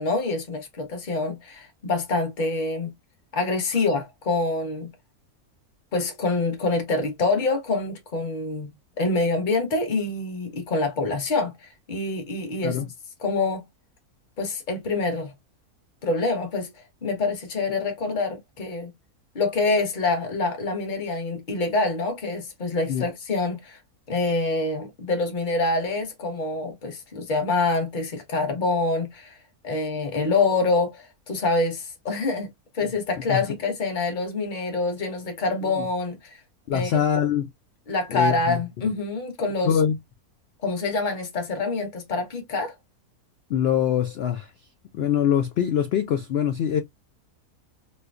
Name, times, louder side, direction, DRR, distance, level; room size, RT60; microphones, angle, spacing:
voice 1, 0.0-2.9 3.3-4.9 5.9-8.7 9.0-12.8 13.2-13.6 14.4-15.3 16.0-16.7 17.0-18.9 19.3-23.8 24.1-29.4 29.6-32.5 32.7-36.4 36.7-36.9 37.9-39.7 40.6-42.7, left 3 dB, 35° left, 1.1 m, -26 dB
voice 2, 36.7-37.5 38.1-38.6 39.6-40.0 43.5-44.5 44.9-46.8, left 9 dB, 85° left, 0.5 m, -23 dB
4.3 x 2.2 x 2.4 m
omnidirectional pair, 1.6 m